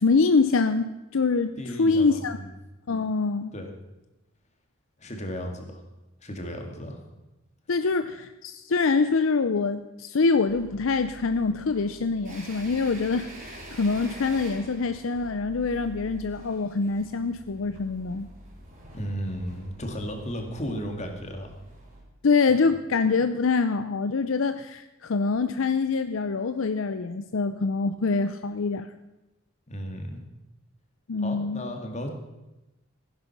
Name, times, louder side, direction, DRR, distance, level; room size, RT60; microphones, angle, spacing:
voice 1, 0.0-2.4 2.9-3.5 7.7-18.3 22.2-28.9 31.1-31.7, left 4 dB, 65° left, 10 dB, 0.6 m, -25 dB
voice 2, 1.6-2.5 3.5-3.7 5.0-5.8 6.2-7.0 18.9-21.5 22.5-22.7 29.7-30.2 31.2-32.1, equal, 35° left, 4 dB, 2.2 m, -34 dB
sound 1, 10.5-22.0, right 1 dB, 40° right, 4.2 m, -46 dB
15.5 x 10.5 x 6.0 m, 0.99 s
head